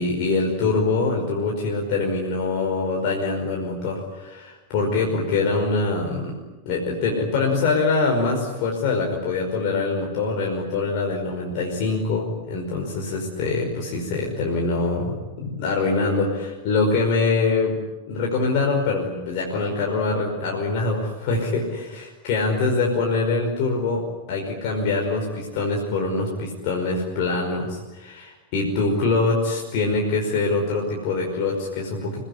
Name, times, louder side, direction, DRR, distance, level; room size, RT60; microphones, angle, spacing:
voice 1, 0.0-6.4 6.7-17.8 18.1-24.0 24.3-32.2, left 3 dB, 45° left, -1 dB, 5.3 m, -24 dB
29.5 x 19.0 x 9.9 m, 1.1 s
figure-of-eight pair, 90°, 0 cm